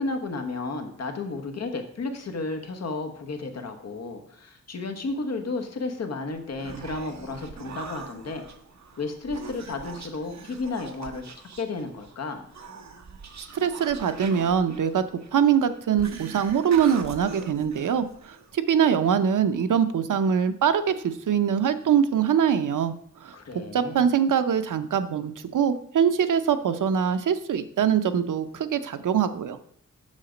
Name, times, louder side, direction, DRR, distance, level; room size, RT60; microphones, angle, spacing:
voice 1, 0.0-8.4 9.0-11.2 11.6-12.5 23.3-24.0, left 3 dB, 55° left, 5 dB, 1.2 m, -33 dB
Human voice, 6.3-18.5, right 5 dB, 65° right, 1.0 m, -42 dB
voice 2, 13.5-15.0 15.3-22.9 23.2-29.6, right 8 dB, 85° right, 10 dB, 0.7 m, -23 dB
7.4 x 6.5 x 5.1 m, 0.67 s
wide cardioid pair, 160°, 30 cm